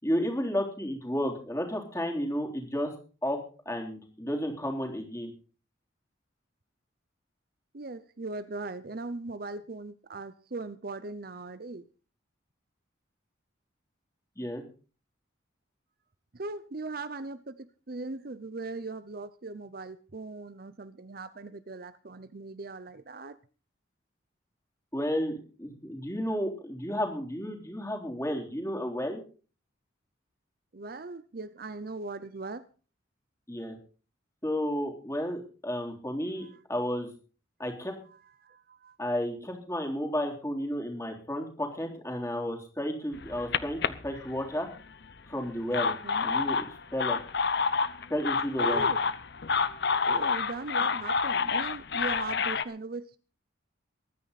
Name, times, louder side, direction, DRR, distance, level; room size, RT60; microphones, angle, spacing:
voice 1, 0.0-2.9 3.2-3.4 3.7-5.3 14.4-14.6 24.9-29.2 33.5-33.8 34.4-37.1 37.6-38.0 39.0-44.7 45.3-45.9 46.2-47.2 48.1-48.9, equal, 15° left, 3.5 m, -32 dB
voice 2, 7.7-11.9 16.3-23.4 30.7-32.7 36.4-36.6 38.4-39.0 45.9-46.3 48.6-49.0 50.1-53.2, right 3 dB, 50° right, 0.7 m, -39 dB
sound 1, 43.1-44.8 45.5-52.6, left 5 dB, 55° left, 0.8 m, -28 dB
22.5 x 9.7 x 4.1 m
head